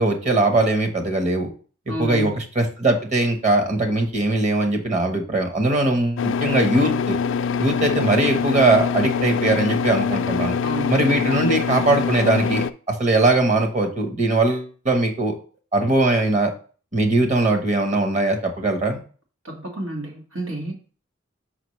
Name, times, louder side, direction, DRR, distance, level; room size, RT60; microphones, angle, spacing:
voice 1, 0.0-1.5 2.0-7.2 7.6-10.5 10.9-12.6 13.0-15.3 15.7-16.5 16.9-19.0, right 2 dB, 40° right, 4 dB, 1.1 m, -20 dB
voice 2, 1.9-2.4 10.6-10.9 19.4-20.7, right 1 dB, 85° right, 0 dB, 1.7 m, -30 dB
sound 1, 6.2-12.7, left 6 dB, 65° left, 0.3 m, -24 dB
5.8 x 5.4 x 3.2 m, 0.40 s
head